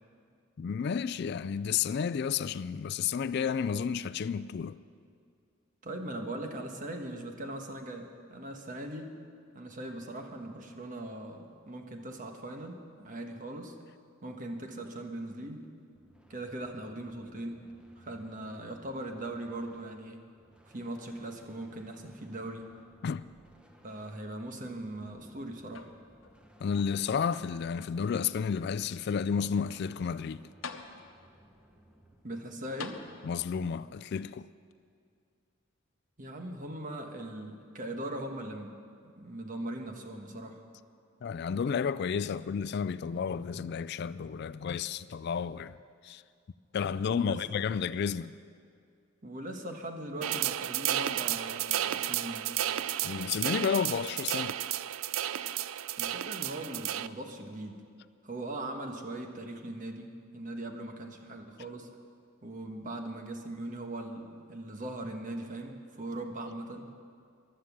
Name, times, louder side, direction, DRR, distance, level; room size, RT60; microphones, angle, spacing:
voice 1, 0.6-4.8 23.0-23.2 26.6-30.5 33.2-34.5 41.2-45.8 46.0-46.2 46.7-48.3 53.0-54.6, left 6 dB, 55° left, 0.3 m, -31 dB
voice 2, 5.8-9.1 9.5-13.8 14.2-15.6 16.3-17.6 18.0-20.3 20.7-22.7 23.8-25.9 32.2-33.1 36.2-38.8 39.2-40.6 47.1-47.6 49.2-52.6 56.0-57.8 58.2-61.9 62.4-66.9, right 1 dB, 40° right, 1.3 m, -40 dB
sound 1, 15.9-33.2, equal, 5° right, 1.0 m, -61 dB
sound 2, 25.7-26.4 26.8-27.8 28.5-28.6 30.2-30.3 30.6-31.4 32.8-33.6 34.7-34.8, left 5 dB, 90° left, 0.9 m, -46 dB
sound 3, 50.2-57.1, right 12 dB, 85° right, 0.4 m, -32 dB
15.0 x 11.5 x 7.3 m
head